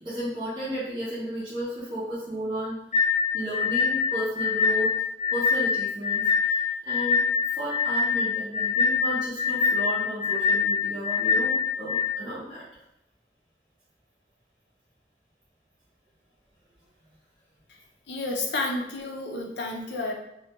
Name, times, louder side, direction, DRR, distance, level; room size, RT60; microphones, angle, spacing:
voice 1, 0.0-2.8 3.3-5.0 5.3-7.2 7.5-12.6, equal, 25° right, -10 dB, 0.6 m, -33 dB
sound 1, 2.9-12.1, left 5 dB, 35° left, 0.6 m, -24 dB
voice 2, 18.1-20.1, left 2 dB, 80° left, 0 dB, 0.5 m, -30 dB
2.3 x 2.2 x 2.8 m, 0.83 s
head